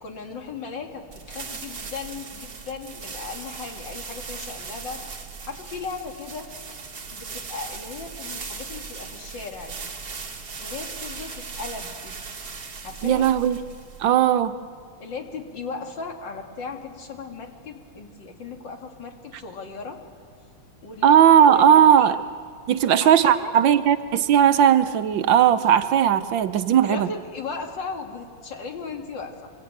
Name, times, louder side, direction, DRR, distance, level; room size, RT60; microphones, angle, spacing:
voice 1, 0.0-5.0 5.5-6.5 7.1-9.9 10.6-12.1 12.8-13.3 15.0-20.0 20.8-22.2 23.0-23.5 26.8-29.5, left 4 dB, 60° left, 3 dB, 2.8 m, -37 dB
sound 1, 1.1-14.2, right 5 dB, 45° right, 2.1 m, -38 dB
voice 2, 13.0-13.6 14.0-14.6 21.0-22.2 22.7-27.1, right 9 dB, 65° right, 11 dB, 1.4 m, -17 dB
26.0 x 23.5 x 8.8 m, 2.1 s
omnidirectional pair, 2.3 m